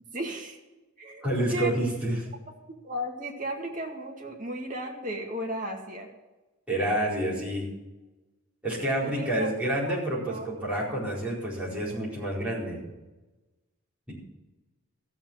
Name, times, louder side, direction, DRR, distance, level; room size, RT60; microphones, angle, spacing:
voice 1, 0.1-0.6 1.0-1.2 1.5-1.7 2.8-6.1 9.0-9.5 9.8-10.0 10.3-10.5, equal, 40° right, 1 dB, 2.1 m, -35 dB
voice 2, 1.2-2.2 6.7-7.7 8.6-12.8, right 1 dB, 5° right, -8 dB, 4.5 m, -28 dB
14.5 x 7.5 x 7.4 m, 1.1 s
head